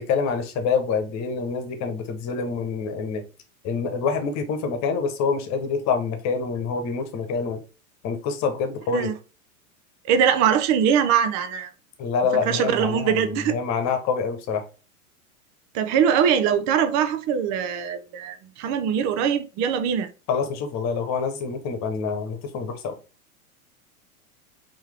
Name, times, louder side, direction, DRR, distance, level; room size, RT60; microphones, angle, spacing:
voice 1, 0.0-3.2 3.6-7.6 8.0-9.1 12.0-14.6 20.3-23.0, left 5 dB, 35° left, 1.2 m, -26 dB
voice 2, 10.0-11.7 12.5-13.6 15.7-20.1, right 8 dB, 40° right, 0.7 m, -22 dB
4.6 x 3.0 x 3.5 m
hypercardioid pair, 95°, 44 cm